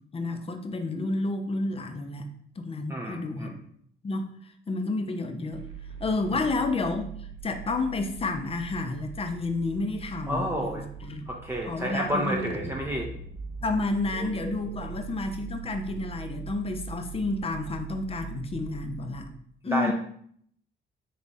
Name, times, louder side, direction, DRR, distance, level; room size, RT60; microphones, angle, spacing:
voice 1, 0.1-2.3 2.6-3.5 4.0-4.3 4.7-5.6 6.0-11.2 11.7-12.6 13.6-19.3 19.6-19.9, left 3 dB, 30° left, 6 dB, 0.6 m, -30 dB
voice 2, 2.9-3.6 6.3-6.5 10.3-10.9 11.3-13.1 14.2-14.8 19.7-19.9, equal, 10° right, -1 dB, 0.6 m, -31 dB
sound 1, 5.5-19.2, right 7 dB, 80° right, 0.5 m, -41 dB
3.5 x 3.2 x 4.0 m, 0.64 s
cardioid pair, 90°, 20 cm